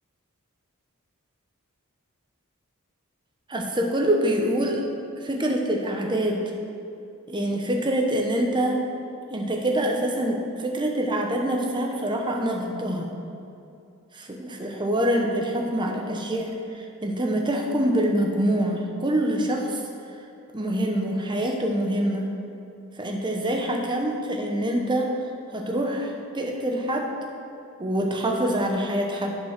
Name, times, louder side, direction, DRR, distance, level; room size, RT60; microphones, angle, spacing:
voice 1, 3.5-4.8 5.2-6.4 7.3-8.8 9.3-13.1 14.1-19.8 20.5-22.3 23.0-25.1 25.5-27.1 27.8-29.4, right 1 dB, 20° right, 1 dB, 0.9 m, -25 dB
10.5 x 5.2 x 6.0 m, 2.7 s
head